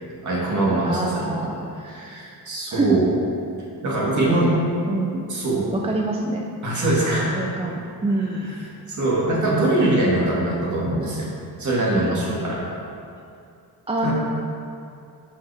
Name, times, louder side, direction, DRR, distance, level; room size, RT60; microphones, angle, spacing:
voice 1, 0.2-1.5 1.8-3.1 3.8-4.5 5.3-5.7 6.6-7.5 8.2-8.6 8.9-11.3 11.6-12.6 14.0-14.1, right 1 dB, 50° right, -5 dB, 2.1 m, -22 dB
voice 2, 0.8-1.6 2.7-3.0 4.4-4.6 4.9-5.3 5.7-6.4 7.3-8.5 13.9-14.1, right 3 dB, 15° right, 0 dB, 0.4 m, -25 dB
12.0 x 5.6 x 3.5 m, 2.5 s
wide cardioid pair, 170°, 38 cm